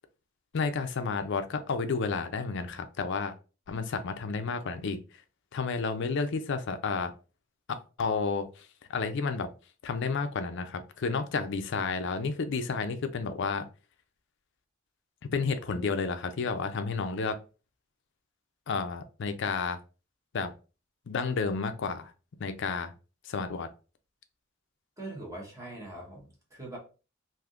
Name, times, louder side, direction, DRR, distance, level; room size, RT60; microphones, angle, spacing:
voice 1, 0.5-3.3 3.7-5.0 5.5-7.1 8.0-9.5 9.8-13.7 15.3-17.4 18.7-19.8 20.3-20.5 21.1-22.1 22.4-22.9 23.2-23.7, left 4 dB, 60° left, 0.4 m, -31 dB
voice 2, 25.0-26.8, right 2 dB, 15° right, 1.1 m, -42 dB
3.5 x 2.6 x 2.4 m
head